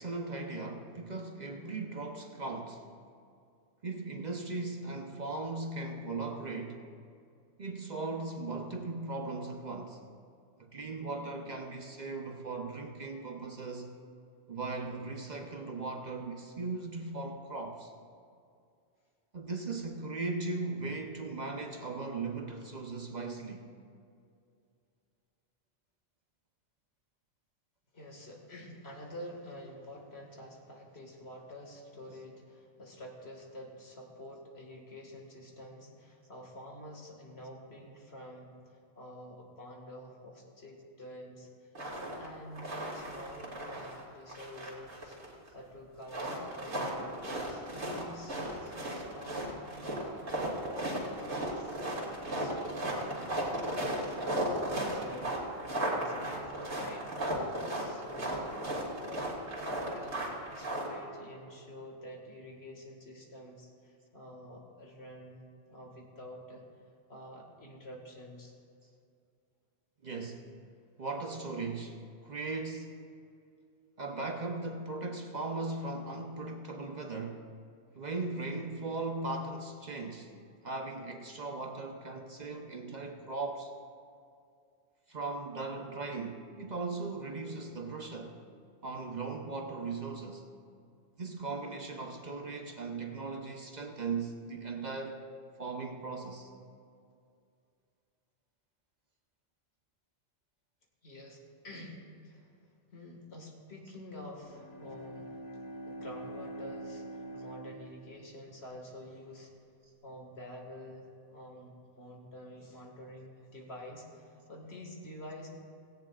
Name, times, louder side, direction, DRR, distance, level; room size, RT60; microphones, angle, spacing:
voice 1, 0.0-2.9 3.8-6.8 7.6-10.1 10.6-13.9 14.5-17.9 19.3-23.6 70.0-70.5 71.0-73.0 74.0-77.4 78.0-80.3 80.6-83.7 85.1-88.4 88.8-90.4 91.2-95.2 95.6-96.5, right 3 dB, 45° right, 3 dB, 0.9 m, -38 dB
voice 2, 27.9-38.5 39.0-41.5 42.1-45.2 45.5-48.3 48.7-49.6 50.2-66.6 67.1-68.5 101.0-102.5 102.9-105.4 105.9-109.5 110.0-115.5, left 1 dB, 70° left, 0 dB, 2.2 m, -48 dB
sound 1, 41.7-42.3 42.6-44.0 44.3-45.5 46.0-60.9, right 1 dB, 85° right, 2.6 m, -35 dB
Bowed string instrument, 104.4-108.7, right 1 dB, 40° left, 1.3 m, -45 dB
17.5 x 17.0 x 2.4 m, 2.4 s
omnidirectional pair, 1.1 m